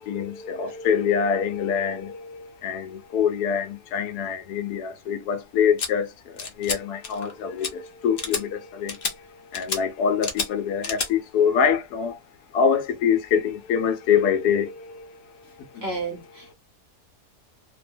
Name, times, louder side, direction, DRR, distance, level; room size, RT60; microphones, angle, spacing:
voice 1, 0.0-12.2 12.5-15.8, left 7 dB, 75° left, 1.1 m, -25 dB
sound 1, 5.8-5.9 6.4-6.8 7.0-7.3 7.6-7.7 8.2-8.4 8.9-9.1 9.5-9.8 10.2-10.5 10.8-11.1, left 5 dB, 50° left, 0.7 m, -29 dB
voice 2, 15.4-16.5, right 3 dB, 55° right, 0.8 m, -33 dB
2.7 x 2.1 x 2.5 m
omnidirectional pair, 1.7 m